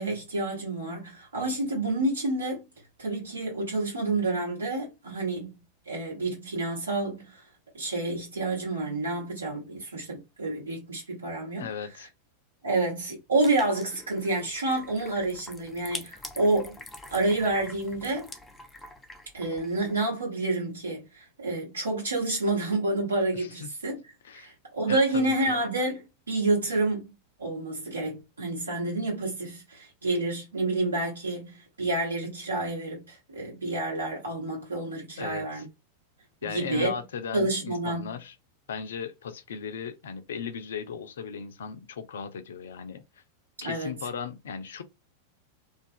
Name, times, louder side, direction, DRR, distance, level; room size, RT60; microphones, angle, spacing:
voice 1, 0.0-2.6 3.0-5.5 5.9-7.4 7.7-11.7 12.6-16.8 17.1-18.3 19.3-24.0 24.3-27.1 27.4-35.6 36.4-36.9 37.3-38.2 43.6-43.9, right 2 dB, 75° right, 1.1 m, -29 dB
voice 2, 11.6-12.1 23.3-23.8 24.2-24.5 24.9-25.6 35.2-35.6 36.4-38.3 38.7-43.0 43.6-44.8, left 7 dB, 60° left, 0.4 m, -37 dB
sound 1, 13.4-20.0, left 2 dB, 10° left, 0.4 m, -45 dB
2.4 x 2.3 x 2.6 m
figure-of-eight pair, 90°, 0 cm